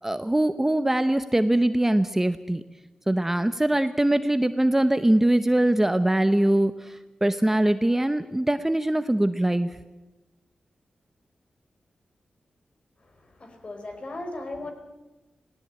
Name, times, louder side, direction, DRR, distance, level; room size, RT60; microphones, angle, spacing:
voice 1, 0.0-2.6 3.1-9.8, right 1 dB, 15° right, 10 dB, 0.8 m, -22 dB
voice 2, 13.0-14.7, left 2 dB, 45° left, 6 dB, 4.5 m, -37 dB
18.5 x 18.0 x 8.9 m, 1.1 s
cardioid pair, 70°, 3 cm